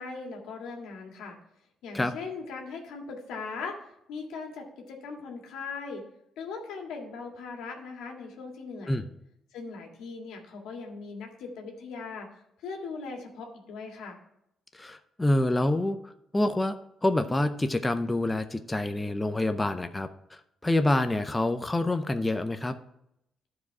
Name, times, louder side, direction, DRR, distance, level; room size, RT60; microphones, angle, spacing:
voice 1, 0.0-1.4 1.8-3.8 4.1-6.0 6.4-9.0 9.5-12.3 12.6-14.2, left 4 dB, 90° left, 2 dB, 1.8 m, -39 dB
voice 2, 14.7-22.8, left 1 dB, 15° left, 8 dB, 0.6 m, -27 dB
11.5 x 4.9 x 4.7 m, 0.79 s
cardioid pair, 90°, 0 cm